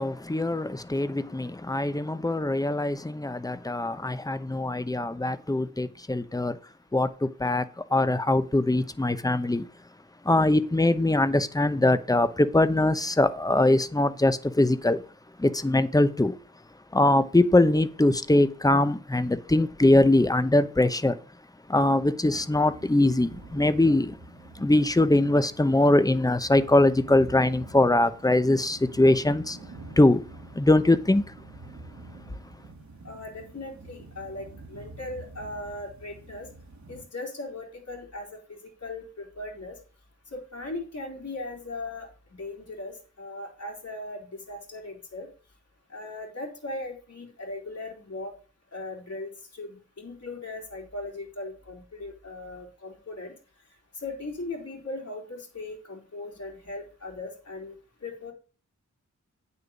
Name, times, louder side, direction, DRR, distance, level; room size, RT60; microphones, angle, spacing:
voice 1, 0.0-6.6 6.9-7.7 7.9-9.7 10.2-15.0 15.4-16.4 16.9-21.2 21.7-24.2 24.5-29.6 30.0-30.2 30.5-31.2, left 2 dB, 10° left, 0.8 m, -22 dB
sound 1, 22.2-37.0, right 2 dB, 65° right, 1.5 m, -47 dB
voice 2, 33.0-36.5 36.9-39.8 40.3-42.1 42.4-45.3 45.9-48.3 48.7-53.3 54.0-58.3, left 2 dB, 55° left, 3.9 m, -38 dB
8.8 x 6.9 x 5.2 m
wide cardioid pair, 85°, 31 cm